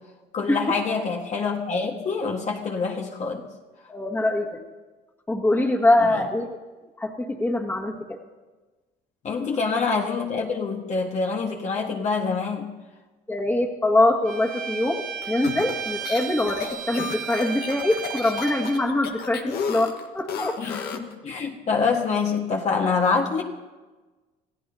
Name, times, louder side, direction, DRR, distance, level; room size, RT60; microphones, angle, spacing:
voice 1, 0.3-3.4 9.2-12.7 20.6-23.4, left 4 dB, 45° left, 1 dB, 1.5 m, -26 dB
voice 2, 3.9-4.7 5.3-6.6 7.0-8.2 13.3-21.0, left 2 dB, 10° left, 1 dB, 1.9 m, -24 dB
Bowed string instrument, 14.3-18.9, right 7 dB, 55° right, 0.7 m, -34 dB
sound 1, 15.2-21.1, left 6 dB, 70° left, 1.5 m, -33 dB
27.0 x 15.5 x 2.8 m, 1.2 s
cardioid pair, 110°, 17 cm